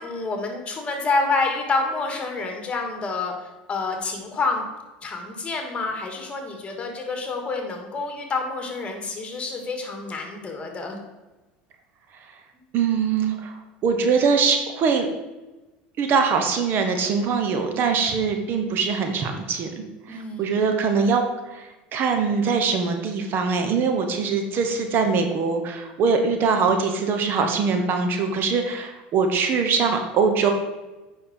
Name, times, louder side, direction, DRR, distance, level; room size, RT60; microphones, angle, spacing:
voice 1, 0.0-4.6 5.0-11.0 17.6-17.9 20.1-20.5, left 3 dB, 25° left, 3 dB, 2.2 m, -28 dB
voice 2, 12.7-13.5 13.8-15.1 16.0-21.2 21.5-30.5, right 5 dB, 50° right, 5 dB, 1.2 m, -22 dB
8.8 x 5.9 x 4.5 m, 1.1 s
supercardioid pair, 95°, 4 cm